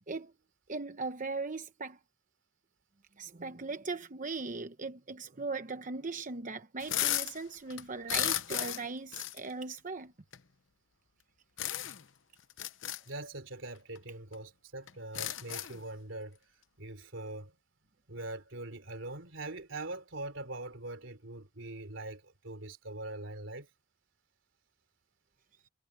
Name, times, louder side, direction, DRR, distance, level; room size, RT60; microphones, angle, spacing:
voice 1, 0.7-2.0 3.2-10.1, right 3 dB, 45° right, 0.9 m, -39 dB
sound 1, 6.8-7.4 7.7-8.9 9.1-9.4 10.3-10.4 11.6-12.0 12.5-13.0 13.9-14.0 14.3-14.4 14.9-15.8, left 13 dB, 80° left, 0.9 m, -34 dB
voice 2, 13.1-16.4 16.8-17.5 18.1-23.7, right 2 dB, 80° right, 3.3 m, -42 dB
head